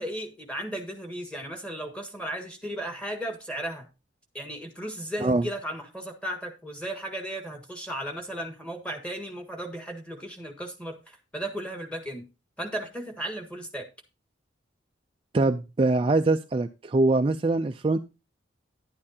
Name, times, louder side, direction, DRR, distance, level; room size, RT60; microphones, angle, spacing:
voice 1, 0.0-3.9 4.3-12.2 12.6-13.9, right 1 dB, 5° left, 3 dB, 1.7 m, -35 dB
voice 2, 15.3-18.0, right 2 dB, 30° right, 7 dB, 0.4 m, -23 dB
11.0 x 8.6 x 2.8 m, 0.28 s
head